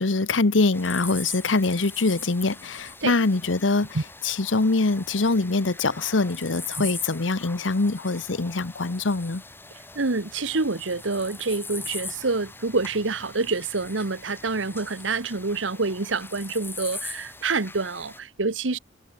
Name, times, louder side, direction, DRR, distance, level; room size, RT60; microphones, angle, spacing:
voice 1, 0.0-3.9 4.2-9.4, left 3 dB, 85° left, 1.1 m, -23 dB
sound 1, 0.7-18.2, left 3 dB, 10° left, 3.0 m, -41 dB
voice 2, 9.9-18.8, right 3 dB, 85° right, 1.3 m, -27 dB
head